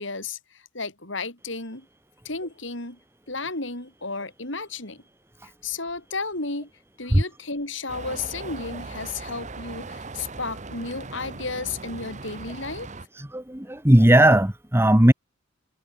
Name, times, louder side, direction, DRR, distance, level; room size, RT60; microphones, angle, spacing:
voice 1, 0.0-1.9 2.2-3.0 3.3-5.0 5.4-6.7 7.0-12.9, left 3 dB, 65° left, 5.1 m, -33 dB
sound 1, 7.9-13.1, right 3 dB, 35° right, 1.5 m, -39 dB
voice 2, 13.3-15.1, right 1 dB, 10° right, 1.4 m, -17 dB
head